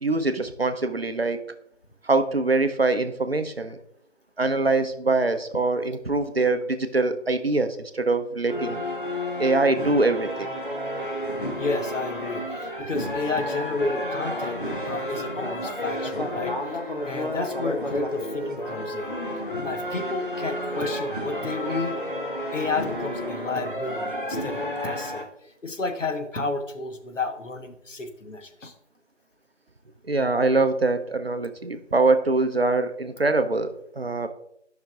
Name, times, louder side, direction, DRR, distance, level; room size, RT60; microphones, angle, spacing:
voice 1, 0.0-1.4 2.0-3.8 4.4-8.8 9.4-10.5 30.1-34.3, right 3 dB, 55° right, 9 dB, 0.6 m, -23 dB
sound 1, 8.5-25.2, equal, 45° left, 0.8 m, -31 dB
voice 2, 11.6-19.1 19.6-22.0 22.5-25.3 25.6-28.7, left 3 dB, 85° left, 6 dB, 1.1 m, -31 dB
10.5 x 5.8 x 2.4 m, 0.73 s
figure-of-eight pair, 180°, 37 cm